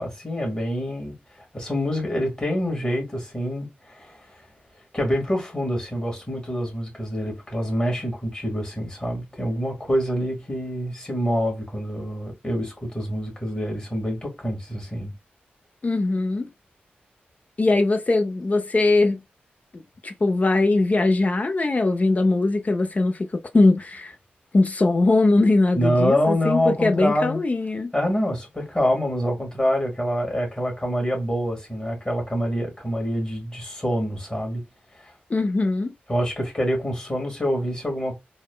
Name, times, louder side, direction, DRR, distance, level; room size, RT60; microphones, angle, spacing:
voice 1, 0.0-4.4 4.9-15.1 25.8-27.4 27.9-34.6 35.0-35.1 36.1-38.1, equal, 25° left, 1.8 m, -26 dB
voice 2, 15.8-16.5 17.6-19.2 20.0-23.3 23.5-24.1 24.5-27.9 35.3-35.9, left 2 dB, 40° left, 0.6 m, -21 dB
4.0 x 2.2 x 2.2 m
cardioid pair, 50°, 4 cm